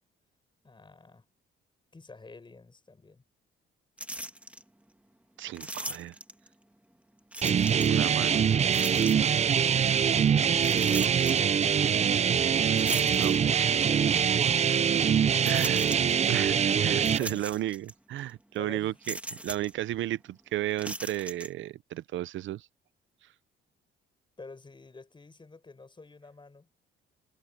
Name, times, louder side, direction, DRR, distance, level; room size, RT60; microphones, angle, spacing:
voice 1, 0.6-1.3 1.9-3.2 13.4-14.4 17.2-17.6 18.6-19.2 24.4-26.7, left 3 dB, 25° left, 5.9 m, -48 dB
sound 1, 4.0-4.6 5.5-6.5 7.3-8.0 8.7-9.4 10.6-11.7 12.8-13.8 14.4-14.5 15.4-16.3 17.0-17.9 18.2-18.3 19.0-19.7 20.7-21.5, right 1 dB, 5° right, 2.2 m, -39 dB
voice 2, 5.4-6.2 7.8-8.4 13.2-13.7 15.4-15.9 16.3-22.7, right 14 dB, 75° right, 0.6 m, -34 dB
sound 2, 7.4-17.2, right 7 dB, 35° right, 0.5 m, -24 dB
cardioid pair, 90°, 20 cm